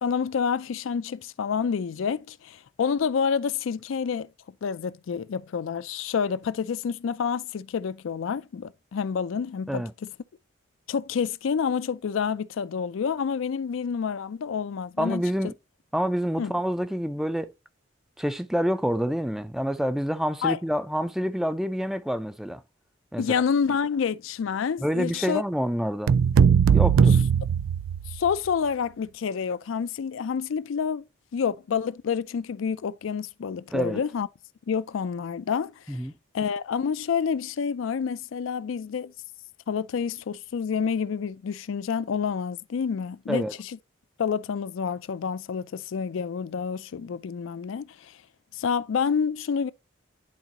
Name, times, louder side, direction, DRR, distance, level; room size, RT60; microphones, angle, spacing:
voice 1, 0.0-4.3 4.6-10.1 10.9-15.2 16.4-16.5 20.4-20.6 23.2-25.4 28.1-31.0 31.3-34.3 34.7-36.0 36.3-39.1 39.7-43.7 44.2-48.2 48.5-49.7, left 6 dB, 80° left, 0.4 m, -28 dB
voice 2, 15.0-15.5 15.9-17.5 18.2-22.6 23.1-23.4 24.8-26.1 26.7-27.2 33.7-34.0 35.9-36.1 43.3-43.5, equal, ahead, 0.3 m, -27 dB
sound 1, 26.1-28.4, right 7 dB, 90° right, 0.3 m, -19 dB
10.5 x 3.9 x 2.8 m
head